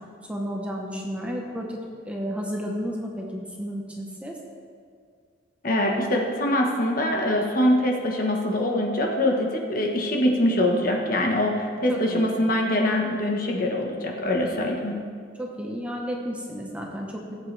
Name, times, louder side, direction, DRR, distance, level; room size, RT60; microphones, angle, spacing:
voice 1, 0.3-4.4 11.9-12.3 14.6-14.7 15.4-17.2, equal, 5° right, -1 dB, 1.0 m, -32 dB
voice 2, 5.6-15.0, left 1 dB, 45° left, 1 dB, 1.3 m, -23 dB
17.0 x 8.4 x 3.4 m, 2.2 s
head